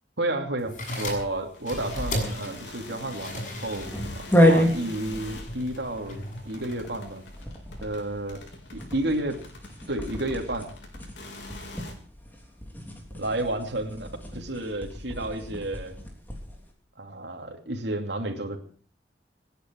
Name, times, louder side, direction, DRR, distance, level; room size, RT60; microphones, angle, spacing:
voice 1, 0.2-7.2 7.8-8.4 8.7-9.4 9.9-10.7 13.1-16.0 17.0-18.6, right 1 dB, 80° right, 3 dB, 2.7 m, -31 dB
sound 1, 0.6-7.4, left 1 dB, 45° left, 7.1 m, -38 dB
sound 2, 1.5-11.9, left 2 dB, 85° left, 4.4 m, -45 dB
sound 3, 1.7-16.6, equal, 10° left, 3.2 m, -30 dB
27.5 x 10.0 x 4.6 m, 0.43 s
head